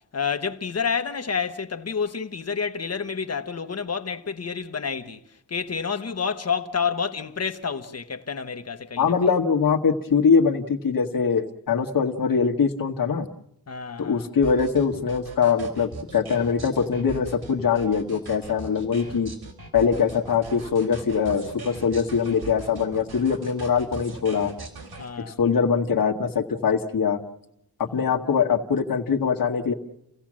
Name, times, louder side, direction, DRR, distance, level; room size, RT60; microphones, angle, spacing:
voice 1, 0.1-5.2 5.5-9.1 13.7-14.3 25.0-25.4 27.9-28.1, left 6 dB, 40° left, 1.1 m, -29 dB
voice 2, 9.0-13.3 14.0-19.3 19.7-24.5 25.3-27.2 27.8-29.7, left 6 dB, 60° left, 1.7 m, -22 dB
sound 1, 14.4-25.1, right 3 dB, 70° right, 4.0 m, -40 dB
29.5 x 16.0 x 7.5 m
wide cardioid pair, 175°, 38 cm